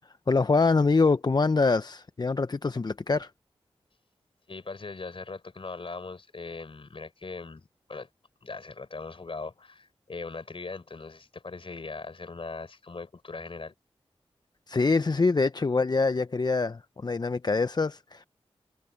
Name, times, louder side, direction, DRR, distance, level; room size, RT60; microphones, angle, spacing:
voice 1, 0.3-3.3 14.7-18.2, left 3 dB, 40° left, 0.6 m, -24 dB
voice 2, 4.5-8.1 8.4-13.7, left 3 dB, 55° left, 4.2 m, -40 dB
cardioid pair, 40°, 11 cm